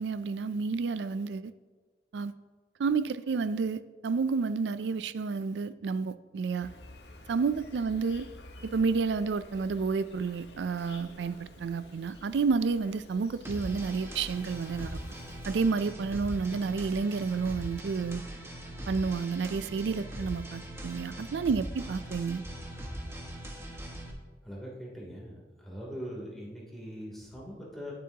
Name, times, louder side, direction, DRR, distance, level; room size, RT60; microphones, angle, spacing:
voice 1, 0.0-1.5 2.1-2.3 2.8-6.7 7.3-8.3 8.6-15.0 15.5-18.2 18.9-22.4, right 5 dB, 80° right, 14 dB, 0.4 m, -30 dB
Insect, 6.6-15.6, left 1 dB, 75° left, 1.3 m, -51 dB
sound 1, 13.4-24.1, right 1 dB, 15° right, 1.4 m, -41 dB
voice 2, 24.4-27.9, equal, ahead, -4 dB, 2.9 m, -42 dB
18.5 x 7.4 x 2.8 m, 1.5 s
head